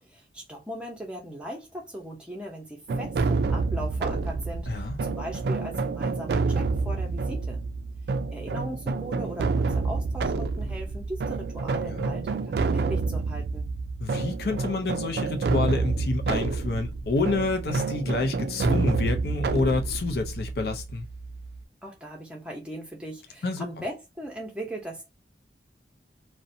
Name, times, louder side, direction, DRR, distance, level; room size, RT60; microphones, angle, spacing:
voice 1, 0.0-7.6 8.3-13.7 21.8-25.1, right 1 dB, 5° right, 0.7 m, -39 dB
sound 1, 2.9-21.6, right 4 dB, 65° right, 0.3 m, -28 dB
voice 2, 14.0-21.1 23.4-23.7, left 3 dB, 60° left, 0.5 m, -28 dB
2.5 x 2.1 x 2.6 m
head